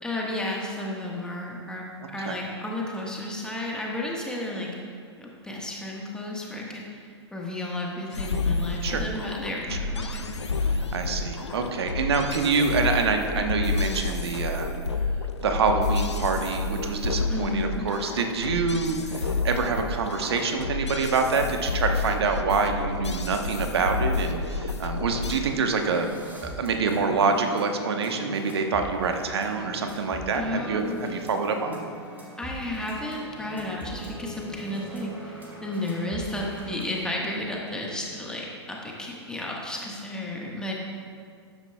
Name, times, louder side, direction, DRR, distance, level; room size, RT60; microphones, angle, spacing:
voice 1, 0.0-4.7 5.2-10.3 17.3-17.9 30.3-31.0 32.4-40.7, left 1 dB, 5° left, -2 dB, 1.5 m, -33 dB
sound 1, 8.1-25.4, left 3 dB, 85° left, 0.6 m, -29 dB
voice 2, 10.6-14.7 15.4-26.1 26.4-31.8, right 4 dB, 65° right, 5 dB, 1.1 m, -26 dB
sound 2, 24.7-24.8 25.1-37.0, equal, 15° right, 2.3 m, -41 dB
13.0 x 9.9 x 2.3 m, 2.2 s
figure-of-eight pair, 105°, 14 cm